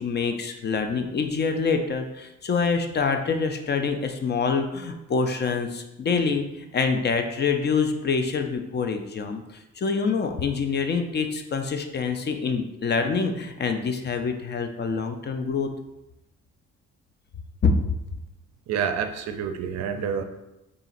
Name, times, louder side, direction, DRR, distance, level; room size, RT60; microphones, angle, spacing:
voice 1, 0.0-15.7 17.6-17.8, left 5 dB, 35° left, 6 dB, 0.4 m, -26 dB
voice 2, 18.7-20.2, right 7 dB, 60° right, 7 dB, 0.5 m, -28 dB
3.9 x 3.8 x 2.5 m, 0.92 s
cardioid pair, 90°, 30 cm